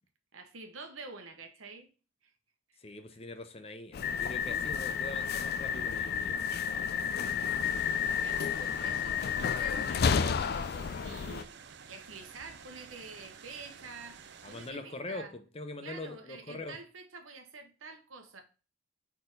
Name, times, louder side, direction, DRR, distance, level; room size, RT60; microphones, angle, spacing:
voice 1, 0.3-1.9 2.7-2.8 8.2-15.4 15.8-18.4, right 4 dB, 85° right, 1.1 m, -48 dB
voice 2, 2.8-6.4 14.4-16.8, left 2 dB, 30° left, 0.7 m, -43 dB
sound 1, 3.9-11.4, left 7 dB, 50° left, 0.4 m, -31 dB
sound 2, 7.6-14.7, right 6 dB, 60° right, 0.6 m, -51 dB
4.4 x 4.2 x 5.2 m
head